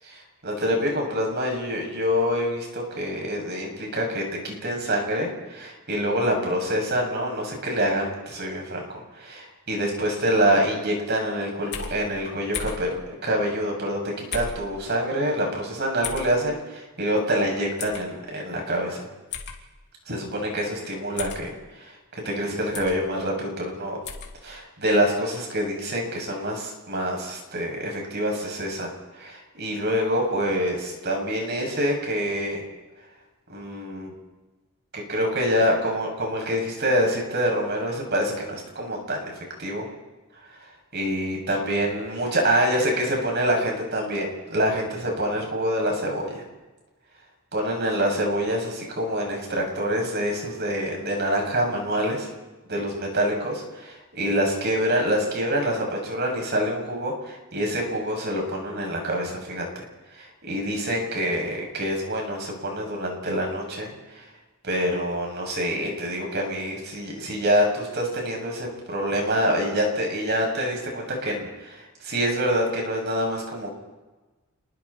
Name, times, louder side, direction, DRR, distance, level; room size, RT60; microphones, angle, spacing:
voice 1, 0.0-8.9 9.2-19.1 20.1-21.5 21.8-24.0 24.4-28.9 29.2-32.6 33.5-34.1 34.9-39.9 40.9-46.4 47.5-52.3 52.7-59.7 60.1-64.2 64.6-73.7, equal, 50° right, 1 dB, 7.3 m, -26 dB
sound 1, 11.7-12.0 12.5-12.8 14.3-14.6 16.0-16.3 17.8-18.0 19.3-19.6 21.2-21.4 22.7-23.0 24.0-24.3, left 6 dB, 50° left, 3.1 m, -33 dB
29.5 x 22.5 x 4.4 m, 1.1 s
head